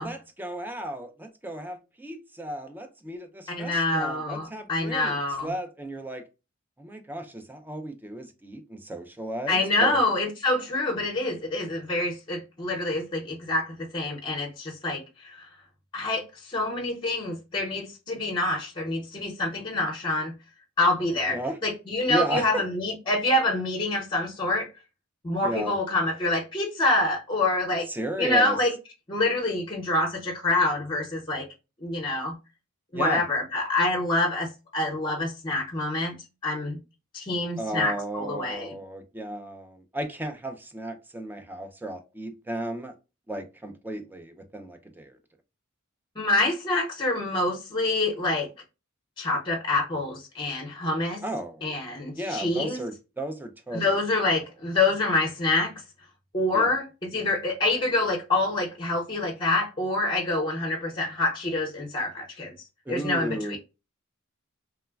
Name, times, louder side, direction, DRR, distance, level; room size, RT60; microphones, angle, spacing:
voice 1, 0.0-6.2 6.8-10.0 21.3-21.6 22.1-22.6 25.4-25.7 27.9-28.6 32.9-33.2 37.6-42.9 43.3-45.2 51.2-51.6 52.1-54.0 56.5-56.8 62.9-63.6, right 1 dB, 10° right, 0.4 m, -34 dB
voice 2, 3.5-5.5 9.5-15.5 15.9-20.3 20.8-24.7 25.2-27.9 28.2-28.7 29.1-31.5 31.8-32.3 32.9-36.1 36.4-36.8 37.1-38.7 46.2-48.5 49.2-51.2 51.6-52.8 53.7-55.7 56.3-56.8 57.1-62.5 62.9-63.6, left 2 dB, 25° left, 0.7 m, -26 dB
3.1 x 2.1 x 2.3 m
head